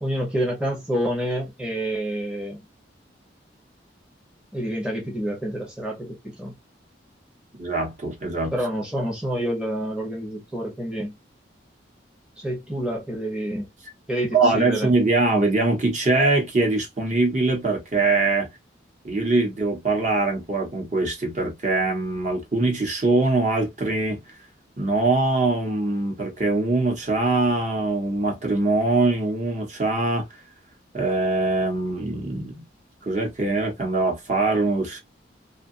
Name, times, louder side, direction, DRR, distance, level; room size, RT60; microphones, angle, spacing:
voice 1, 0.0-2.6 4.5-6.5 8.5-11.1 12.4-13.7 14.1-14.9, equal, 5° right, 0.7 m, -28 dB
voice 2, 7.6-8.5 14.3-18.5 19.0-24.2 24.8-30.2 30.9-32.6 33.1-35.0, right 2 dB, 40° right, 1.0 m, -22 dB
2.7 x 2.4 x 2.5 m
head